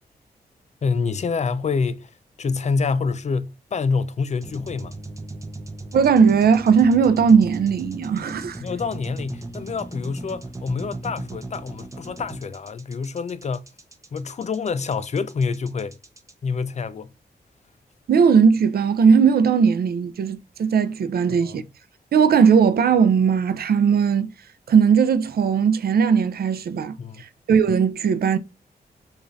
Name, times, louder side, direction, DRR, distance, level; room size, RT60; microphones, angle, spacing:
voice 1, 0.8-2.1 2.4-4.9 8.6-13.6 14.1-15.9 16.4-17.1 21.3-21.7 27.0-27.2, left 5 dB, 45° left, 0.4 m, -27 dB
sound 1, 4.4-16.3, right 2 dB, 20° right, 0.7 m, -37 dB
voice 2, 5.9-8.6 18.1-21.6 22.1-24.3 24.7-28.4, right 6 dB, 70° right, 0.5 m, -18 dB
4.9 x 2.5 x 2.6 m
cardioid pair, 70°, 17 cm